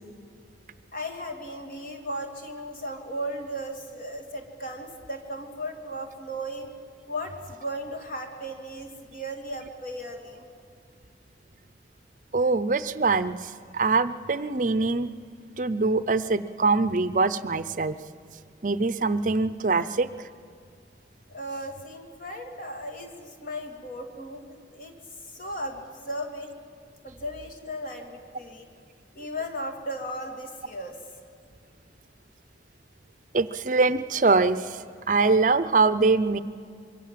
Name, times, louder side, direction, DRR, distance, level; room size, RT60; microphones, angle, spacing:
voice 1, 0.9-6.7 7.1-10.5 21.3-24.9 25.3-26.5 27.0-28.7 29.1-31.0, equal, 50° left, 3 dB, 2.8 m, -36 dB
voice 2, 12.3-15.1 15.6-18.0 18.6-20.1 33.3-34.8 35.1-36.4, right 3 dB, 45° right, 14 dB, 0.6 m, -23 dB
25.5 x 23.0 x 7.6 m, 2.3 s
head